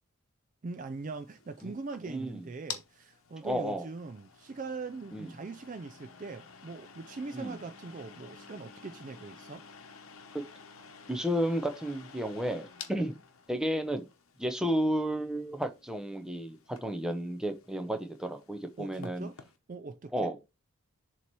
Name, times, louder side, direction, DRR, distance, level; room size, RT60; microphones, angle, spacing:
voice 1, 0.6-9.7 18.8-19.4 19.7-20.3, right 4 dB, 35° right, 0.3 m, -41 dB
sound 1, 0.9-19.6, left 6 dB, 80° left, 0.9 m, -51 dB
voice 2, 2.1-2.4 3.4-3.8 5.1-5.3 7.3-7.6 10.3-10.4 11.1-13.1 13.5-14.0 14.4-19.3 20.1-20.4, equal, 5° right, 0.7 m, -32 dB
7.0 x 3.0 x 4.6 m
head